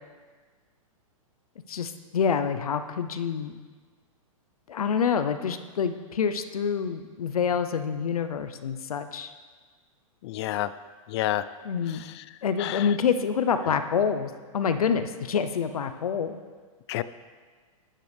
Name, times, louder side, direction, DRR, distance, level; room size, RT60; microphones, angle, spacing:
voice 1, 1.7-3.6 4.7-9.3 11.6-12.0 12.4-16.3, left 7 dB, 90° left, 9 dB, 0.8 m, -27 dB
voice 2, 10.2-10.7 11.1-11.5 12.2-12.3 12.6-12.9 16.9-17.0, left 14 dB, 50° left, 15 dB, 0.5 m, -28 dB
12.5 x 10.0 x 3.5 m, 1.5 s
hypercardioid pair, 140°, 18 cm